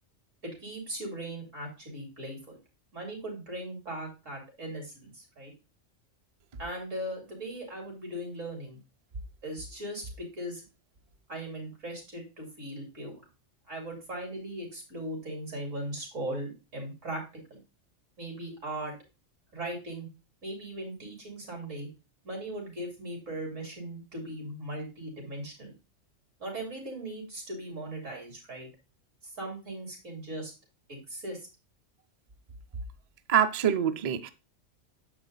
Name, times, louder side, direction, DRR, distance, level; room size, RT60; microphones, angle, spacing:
voice 1, 0.4-2.6 2.9-5.5 6.6-8.8 9.4-10.6 11.3-13.1 13.7-17.2 17.5-17.6 18.2-18.9 19.5-20.1 20.4-21.9 22.2-25.7 26.4-28.7 29.3-30.5 30.9-31.5, right 1 dB, 80° right, 3.3 m, -38 dB
voice 2, 33.3-34.3, right 9 dB, 50° right, 0.4 m, -25 dB
7.3 x 4.9 x 3.9 m
omnidirectional pair, 1.3 m